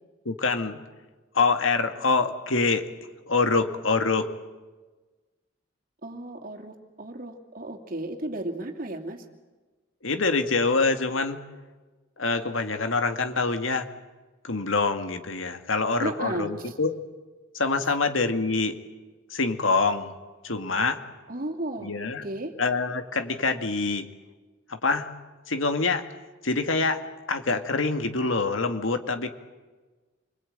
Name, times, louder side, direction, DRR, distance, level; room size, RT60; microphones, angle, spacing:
voice 1, 0.3-0.8 1.3-2.9 3.3-4.3 10.0-11.4 12.2-13.9 14.4-17.0 17.5-18.8 19.3-20.1 20.4-21.0 21.8-22.3 22.6-24.1 24.7-25.1 25.5-26.1 26.4-29.3, left 3 dB, 85° left, 7 dB, 2.0 m, -25 dB
voice 2, 6.0-9.2 16.0-16.8 21.3-22.5, right 1 dB, 45° right, 4 dB, 2.6 m, -34 dB
28.0 x 21.5 x 8.8 m, 1.3 s
head